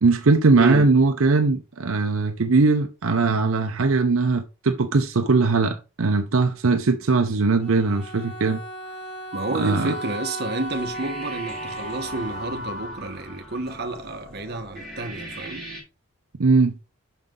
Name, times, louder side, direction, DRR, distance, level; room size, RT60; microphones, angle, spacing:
voice 1, 0.0-8.6 9.5-9.9 16.4-16.8, right 3 dB, 70° right, 0.6 m, -20 dB
voice 2, 0.6-0.9 9.3-15.7, right 2 dB, 50° right, 1.0 m, -30 dB
Bowed string instrument, 7.6-12.9, right 1 dB, 30° left, 2.4 m, -38 dB
Wind instrument woodwind instrument, 9.3-13.0, right 1 dB, 30° right, 1.2 m, -37 dB
sound 1, 10.6-15.8, equal, ahead, 2.5 m, -40 dB
6.4 x 5.5 x 3.7 m
head